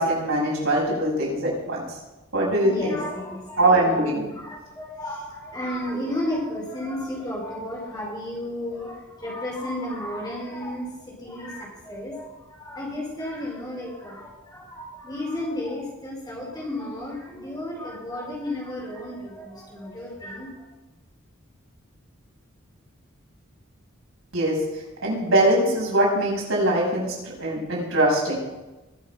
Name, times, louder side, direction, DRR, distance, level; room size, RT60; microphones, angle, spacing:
voice 1, 0.0-1.8 2.3-2.9 3.6-4.3 24.3-28.4, right 1 dB, 85° right, -4 dB, 6.5 m, -22 dB
voice 2, 2.5-3.9 4.3-20.6, left 1 dB, 20° left, -4 dB, 5.2 m, -33 dB
21.5 x 7.5 x 6.0 m, 1.1 s
head